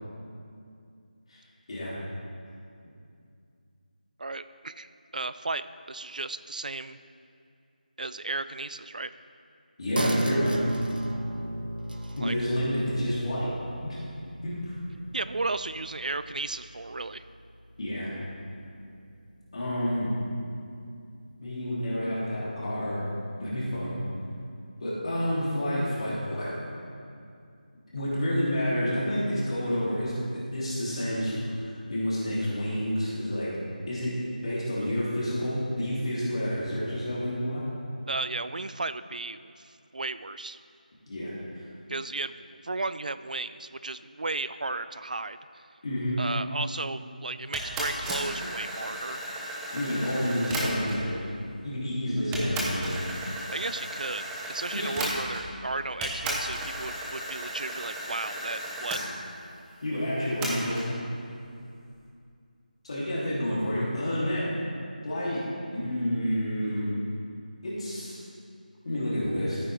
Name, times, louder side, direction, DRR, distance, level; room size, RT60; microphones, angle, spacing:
voice 1, 4.2-7.0 8.0-9.1 12.2-12.3 15.1-17.2 38.1-40.6 41.9-42.3 42.6-45.6 46.2-49.2 53.5-54.2 54.5-59.0, right 3 dB, 60° right, 13 dB, 0.4 m, -34 dB
voice 2, 9.8-10.6 12.2-13.5 13.8-14.0 14.4-14.6 17.8-18.1 19.5-20.1 21.4-23.0 23.4-24.0 24.8-26.5 27.9-33.5 33.9-37.6 41.1-41.3 45.8-46.2 49.7-51.1 51.6-52.9 54.7-54.9 59.8-60.8 62.8-64.5 65.0-65.4 65.7-66.9 67.6-68.2 68.8-69.6, equal, 40° left, -9 dB, 2.9 m, -29 dB
sound 1, 10.0-17.0 17.3-17.4, right 1 dB, 75° right, 1.0 m, -33 dB
sound 2, 47.5-51.1 51.8-51.9 52.3-55.6 56.0-59.0 60.4-60.9, right 1 dB, 5° right, 0.6 m, -34 dB
14.0 x 8.9 x 3.4 m, 2.4 s
figure-of-eight pair, 170°, 5 cm